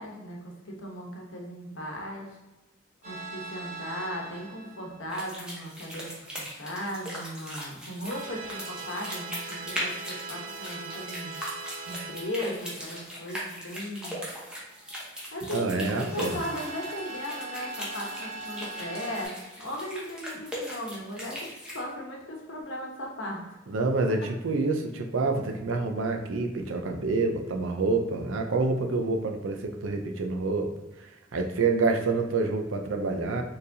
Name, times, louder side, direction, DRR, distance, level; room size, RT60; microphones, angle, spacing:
voice 1, 0.0-2.4 3.0-11.4 11.8-14.2 15.3-23.4, left 1 dB, 75° left, -1 dB, 1.0 m, -37 dB
sound 1, 3.0-5.2 8.1-13.3 16.1-19.3, right 3 dB, 35° right, 0.8 m, -41 dB
sound 2, 5.1-21.8, equal, 5° right, 0.9 m, -39 dB
voice 2, 15.5-16.4 23.7-30.7 31.0-33.4, right 3 dB, 80° right, 4 dB, 0.5 m, -27 dB
4.4 x 3.3 x 2.7 m, 1.1 s
head